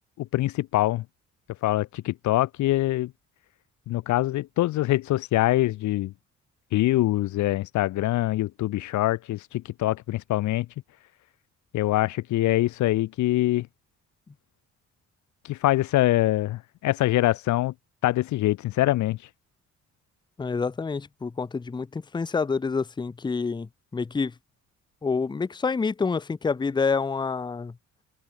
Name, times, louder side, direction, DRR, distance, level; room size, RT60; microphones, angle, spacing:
voice 1, 0.2-1.0 1.6-3.1 3.9-6.1 6.7-10.7 11.7-13.7 15.5-17.7 18.0-19.2, left 16 dB, 75° left, 0.6 m, -24 dB
voice 2, 20.4-24.3 25.0-27.7, left 4 dB, 15° left, 0.6 m, -27 dB
open air
cardioid pair, 135°, 30 cm